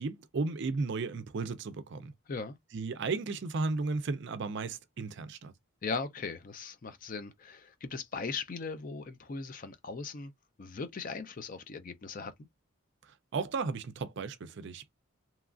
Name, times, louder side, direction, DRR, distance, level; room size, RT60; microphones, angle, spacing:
voice 1, 0.0-2.1 2.7-5.5 13.3-14.9, right 3 dB, 55° right, 0.4 m, -34 dB
voice 2, 5.8-10.3 10.6-12.3, left 4 dB, 40° left, 0.4 m, -38 dB
2.9 x 2.4 x 2.4 m
head